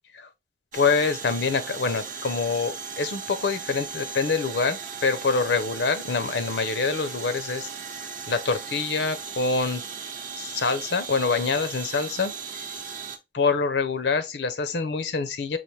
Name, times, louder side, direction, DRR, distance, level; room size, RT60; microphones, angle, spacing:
voice 1, 0.7-7.7 8.3-9.8 10.4-12.7 13.3-15.6, left 4 dB, 75° left, 0.6 m, -25 dB
sound 1, 0.7-13.2, right 6 dB, 45° right, 0.6 m, -37 dB
5.6 x 2.6 x 3.2 m
head